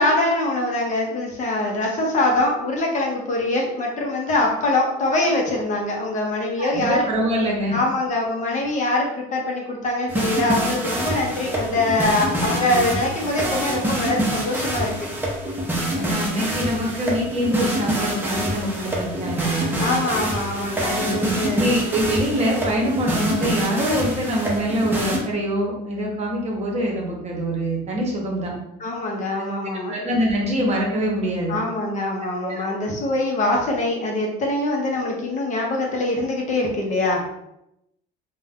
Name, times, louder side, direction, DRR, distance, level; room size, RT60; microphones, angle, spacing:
voice 1, 0.0-7.1 7.7-14.9 19.8-21.8 28.8-29.9 31.5-37.2, left 2 dB, 40° left, 0 dB, 0.7 m, -23 dB
voice 2, 6.6-7.8 12.3-12.9 15.9-19.9 21.0-28.5 29.4-29.5 29.9-31.5 32.4-32.6, equal, 35° right, -1 dB, 0.9 m, -24 dB
sound 1, 10.1-25.2, right 1 dB, 10° right, 0.7 m, -26 dB
2.5 x 2.2 x 3.4 m, 0.82 s
cardioid pair, 120°, 19 cm